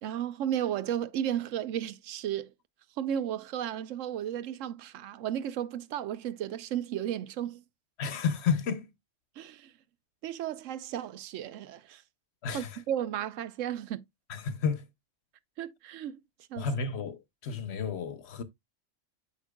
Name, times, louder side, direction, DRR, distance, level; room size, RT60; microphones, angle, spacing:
voice 1, 0.0-2.5 3.0-7.6 9.4-9.7 10.2-12.0 12.5-14.0 15.6-16.2 16.5-16.7, right 10 dB, 85° right, 1.0 m, -34 dB
voice 2, 8.0-8.9 12.4-12.8 14.3-14.9 16.6-18.4, left 6 dB, 60° left, 1.0 m, -31 dB
8.2 x 5.7 x 2.2 m
omnidirectional pair, 1.3 m